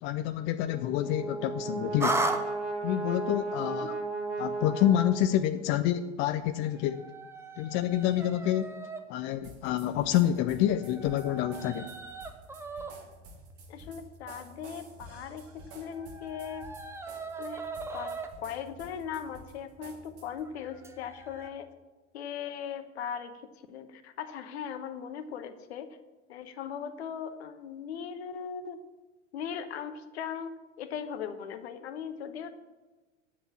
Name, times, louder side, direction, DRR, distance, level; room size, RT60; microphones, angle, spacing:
voice 1, 0.0-2.3 2.8-4.0 4.4-7.0 7.6-8.8 9.1-11.9, left 12 dB, 35° left, 10 dB, 0.5 m, -28 dB
Brass instrument, 0.6-5.7, right 3 dB, 70° right, 1.8 m, -35 dB
sound 1, 2.0-2.4 6.5-9.0 9.9-21.5, right 2 dB, 5° right, 0.8 m, -39 dB
sound 2, 9.4-20.5, right 2 dB, 40° right, 2.1 m, -51 dB
voice 2, 13.7-16.7 17.4-17.6 17.9-21.7 22.1-26.0 26.3-28.9 29.3-32.6, left 7 dB, 60° left, 10 dB, 1.1 m, -39 dB
9.3 x 8.0 x 7.3 m, 1.2 s
figure-of-eight pair, 80°, 36 cm